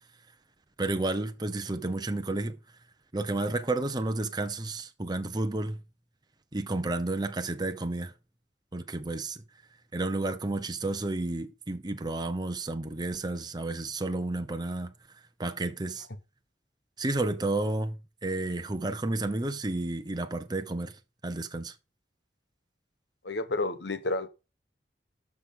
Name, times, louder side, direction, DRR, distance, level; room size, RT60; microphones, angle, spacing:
voice 1, 0.8-2.6 3.1-5.8 6.5-8.1 8.7-9.4 9.9-14.9 15.4-16.1 17.0-21.8, right 2 dB, 25° right, 0.9 m, -31 dB
voice 2, 23.2-24.3, left 2 dB, 75° left, 1.1 m, -30 dB
12.0 x 6.3 x 3.8 m
head